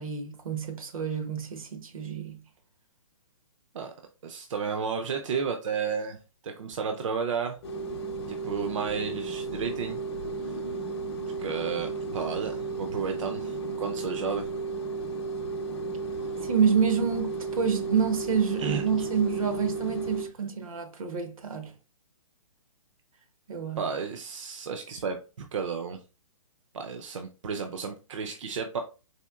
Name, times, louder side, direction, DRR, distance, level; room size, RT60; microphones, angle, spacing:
voice 1, 0.0-2.4 16.4-21.7 23.5-23.8, right 6 dB, 85° right, 0.9 m, -28 dB
voice 2, 4.2-6.2 6.4-7.6 8.3-10.0 10.4-10.6 11.4-14.5 18.6-19.1 23.8-26.0 26.7-28.8, right 6 dB, 65° right, 0.5 m, -32 dB
sound 1, 7.6-20.3, right 4 dB, 50° left, 0.6 m, -34 dB
4.2 x 2.8 x 2.3 m
hypercardioid pair, 165°, 17 cm